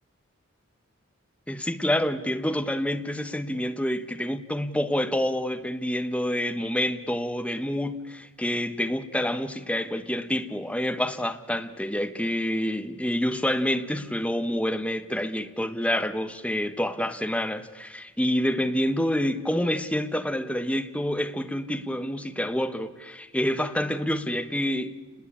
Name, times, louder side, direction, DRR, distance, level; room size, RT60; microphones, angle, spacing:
voice 1, 1.5-25.0, left 1 dB, 5° left, 1.2 m, -27 dB
29.0 x 20.0 x 8.7 m
head